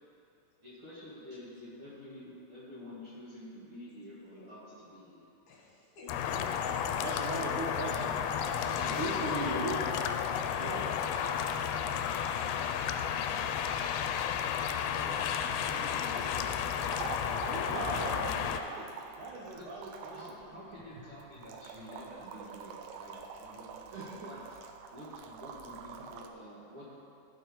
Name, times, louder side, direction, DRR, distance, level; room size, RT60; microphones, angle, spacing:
voice 1, 0.6-5.3 8.9-10.1 14.2-17.9 19.5-19.7 20.0-24.6 24.9-27.0, left 1 dB, 40° right, -10 dB, 2.1 m, -49 dB
voice 2, 4.2-4.5 5.5-7.1 7.4-8.8 9.5-12.5 16.1-16.2 22.1-22.4 23.1-23.4, left 2 dB, 65° left, -3 dB, 3.2 m, -49 dB
sound 1, 6.1-18.6, left 8 dB, 85° left, 2.7 m, -32 dB
voice 3, 7.0-8.1 8.6-9.8 10.6-10.9 17.5-20.2 23.9-24.2, right 2 dB, 65° right, -6 dB, 2.0 m, -38 dB
sound 2, 16.0-26.3, right 6 dB, 85° right, 2.9 m, -46 dB
14.5 x 6.2 x 5.3 m, 2.6 s
omnidirectional pair, 4.9 m